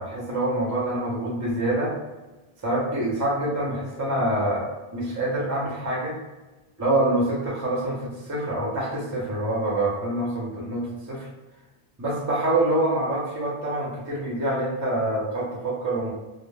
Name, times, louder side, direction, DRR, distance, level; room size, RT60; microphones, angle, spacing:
voice 1, 0.0-1.9 2.6-4.7 4.9-6.2 6.8-11.3 12.0-16.1, right 1 dB, 20° right, -4 dB, 0.5 m, -26 dB
2.1 x 2.1 x 3.2 m, 1.2 s
omnidirectional pair, 1.1 m